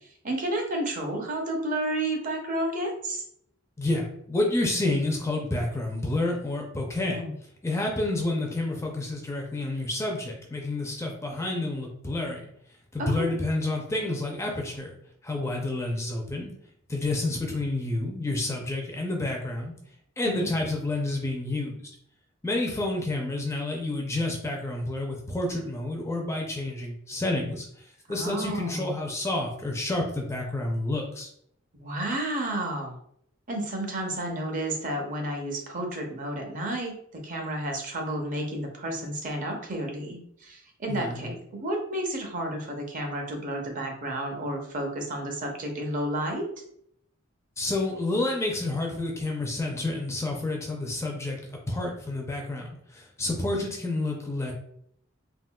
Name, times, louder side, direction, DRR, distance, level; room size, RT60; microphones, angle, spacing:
voice 1, 0.2-3.2 7.1-7.3 13.0-13.3 20.3-20.5 28.1-28.9 31.7-33.0 33.5-37.0 37.2-46.5, right 1 dB, 40° right, 2 dB, 0.6 m, -31 dB
voice 2, 3.8-7.2 7.6-12.4 12.9-14.9 15.2-16.5 16.9-19.7 20.2-21.7 22.4-31.3 40.9-41.3 47.6-51.4 51.7-54.5, left 2 dB, 15° left, 0 dB, 0.4 m, -29 dB
3.6 x 2.2 x 2.2 m, 0.69 s
head